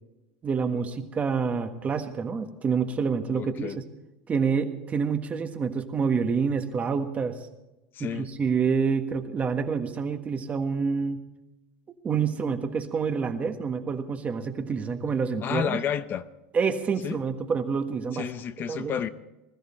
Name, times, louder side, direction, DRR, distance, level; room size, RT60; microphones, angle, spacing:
voice 1, 0.4-3.8 4.3-7.3 8.0-11.2 12.0-15.8 16.5-18.3 18.7-19.0, right 5 dB, 25° right, 6 dB, 1.5 m, -27 dB
voice 2, 3.3-3.8 7.9-8.3 15.4-16.2 17.0-17.2 18.1-19.1, left 8 dB, 35° left, 12 dB, 0.7 m, -31 dB
20.5 x 13.5 x 4.4 m, 0.99 s
supercardioid pair, 140°, 6 cm